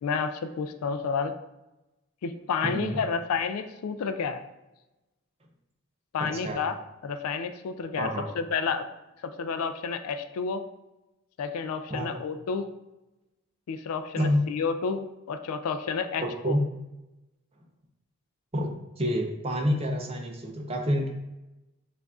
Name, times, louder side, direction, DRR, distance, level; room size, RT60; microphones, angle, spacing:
voice 1, 0.0-1.3 2.2-4.4 6.1-6.8 7.0-8.9 9.2-10.6 11.4-12.7 13.7-16.6, left 5 dB, 85° left, 9 dB, 0.3 m, -30 dB
voice 2, 2.6-3.0 6.2-6.6 8.0-8.2 11.9-12.1 14.2-14.4 16.2-16.6 18.5-21.1, equal, 25° right, 1 dB, 0.5 m, -28 dB
6.8 x 2.5 x 2.4 m, 0.98 s
head